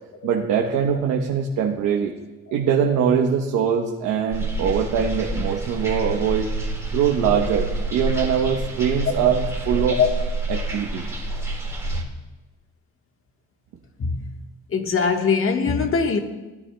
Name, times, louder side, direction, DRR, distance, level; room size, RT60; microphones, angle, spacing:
voice 1, 0.2-2.1 2.5-6.5 6.9-10.0 10.5-11.0, right 7 dB, 90° right, 1.0 m, -22 dB
sound 1, 4.3-12.0, right 2 dB, 10° right, 1.9 m, -28 dB
voice 2, 14.0-14.4 14.7-16.2, left 5 dB, 45° left, 1.3 m, -22 dB
18.0 x 9.6 x 2.2 m
cardioid pair, 90°, 30 cm